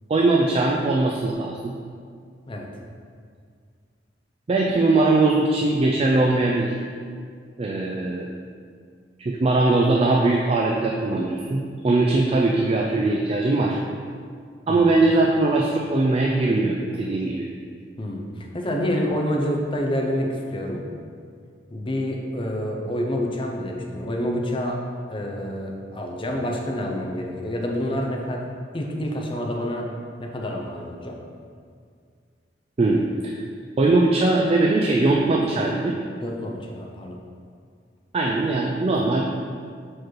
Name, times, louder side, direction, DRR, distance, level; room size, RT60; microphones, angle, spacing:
voice 1, 0.1-1.7 4.5-6.8 7.6-8.3 9.2-13.8 14.7-17.5 32.8-33.4 33.8-36.0 38.1-39.2, right 2 dB, 35° right, -1 dB, 0.4 m, -21 dB
voice 2, 18.0-20.9 21.7-28.5 28.7-29.9 30.2-31.2 36.2-37.2, equal, 30° left, 0 dB, 0.7 m, -28 dB
4.6 x 4.4 x 4.6 m, 2.1 s
head